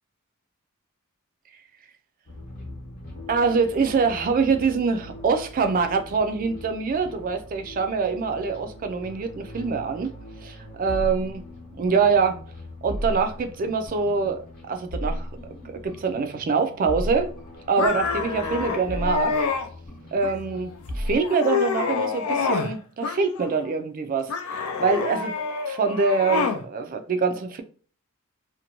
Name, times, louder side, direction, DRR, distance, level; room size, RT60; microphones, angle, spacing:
sound 1, 2.3-21.2, equal, 40° left, 0.8 m, -37 dB
voice 1, 3.3-10.1 10.4-11.4 11.8-12.4 12.8-14.4 14.7-15.3 15.6-17.3 17.7-19.4 20.1-25.3 25.7-27.6, right 5 dB, 40° right, 0.3 m, -24 dB
sound 2, 17.8-19.7 20.2-20.7 21.1-22.7 23.0-23.7 24.3-26.6, left 5 dB, 75° left, 0.4 m, -27 dB
2.5 x 2.2 x 2.9 m
head